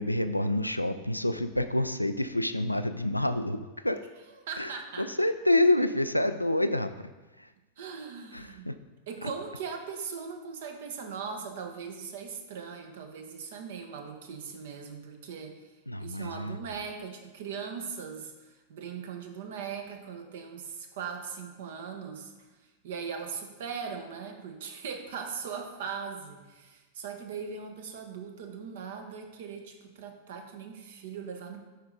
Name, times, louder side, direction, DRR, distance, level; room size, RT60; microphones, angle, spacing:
voice 1, 0.0-4.0 4.6-4.7 5.0-7.1 7.4-7.5 8.3-8.8 9.2-9.3 15.9-16.6, left 1 dB, 90° left, 10 dB, 0.3 m, -28 dB
voice 2, 4.5-5.1 7.8-8.7 9.1-15.7 16.0-22.5 22.8-31.6, right 6 dB, 55° right, 5 dB, 1.0 m, -39 dB
7.2 x 5.2 x 3.8 m, 1.2 s
figure-of-eight pair, 90°, 0 cm